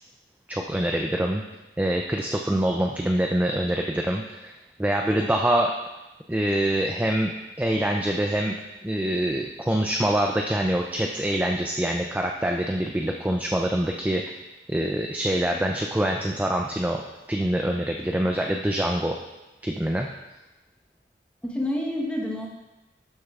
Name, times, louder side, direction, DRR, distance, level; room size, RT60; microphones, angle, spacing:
voice 1, 0.5-1.4 1.8-4.5 4.8-5.7 6.3-8.6 8.8-14.3 14.7-17.0 17.3-19.2 19.6-20.1, right 1 dB, 10° right, 1 dB, 0.3 m, -25 dB
voice 2, 21.4-22.5, left 1 dB, 5° left, -2 dB, 1.1 m, -28 dB
12.0 x 6.6 x 2.4 m, 1.0 s
head